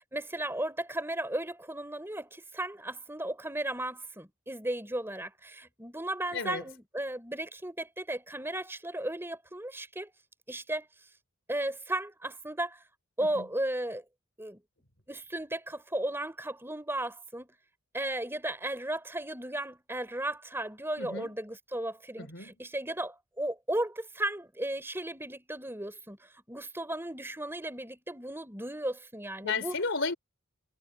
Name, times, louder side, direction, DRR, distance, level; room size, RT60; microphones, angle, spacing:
voice 1, 0.1-10.1 10.5-10.9 11.5-12.8 13.2-14.0 14.4-14.6 15.1-17.5 17.9-29.8, right 1 dB, 10° right, 3.6 m, -35 dB
voice 2, 6.3-6.6 13.3-13.5 21.0-21.3 22.2-22.5 29.4-30.1, left 4 dB, 55° left, 3.9 m, -33 dB
head